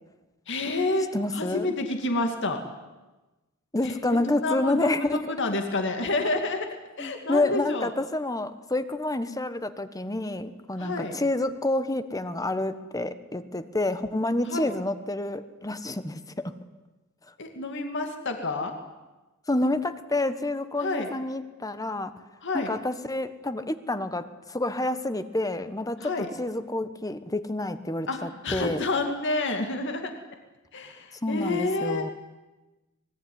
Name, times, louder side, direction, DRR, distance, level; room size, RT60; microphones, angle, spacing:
voice 1, 0.5-1.1 1.3-2.6 3.8-6.7 7.0-7.9 10.8-11.2 14.5-14.7 17.4-18.8 20.8-21.1 22.4-22.7 26.0-26.3 28.1-30.1 30.7-32.1, left 2 dB, 60° left, 5 dB, 2.5 m, -29 dB
voice 2, 1.1-1.7 3.7-5.3 7.0-16.5 19.5-22.1 22.5-26.1 26.4-28.8 31.2-32.1, left 2 dB, 15° left, 11 dB, 1.3 m, -28 dB
25.0 x 21.0 x 9.6 m, 1.1 s
head